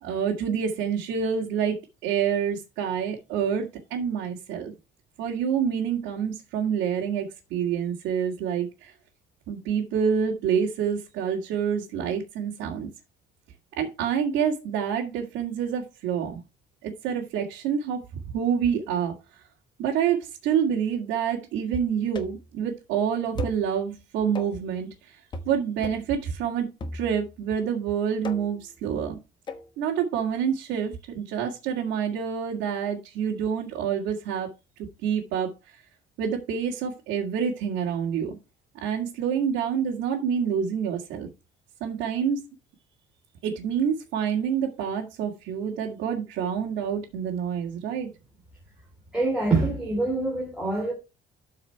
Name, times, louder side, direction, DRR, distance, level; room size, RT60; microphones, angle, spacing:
voice 1, 0.0-3.7 3.9-4.7 5.2-8.9 9.5-12.9 13.8-16.4 16.8-18.0 18.3-19.4 19.8-25.2 25.5-29.2 29.8-34.5 35.0-35.8 36.2-38.4 38.8-41.3 41.8-42.4 43.4-48.1, right 7 dB, 90° right, 2.2 m, -27 dB
sound 1, 22.2-22.5 23.4-23.7 24.4-24.7 25.3-25.6 25.8-26.1 26.8-27.4 28.2-28.7 29.5-29.7, left 3 dB, 25° left, 1.2 m, -37 dB
voice 2, 49.1-50.9, right 3 dB, 5° right, 3.4 m, -25 dB
12.5 x 4.9 x 4.6 m
cardioid pair, 175°, 19 cm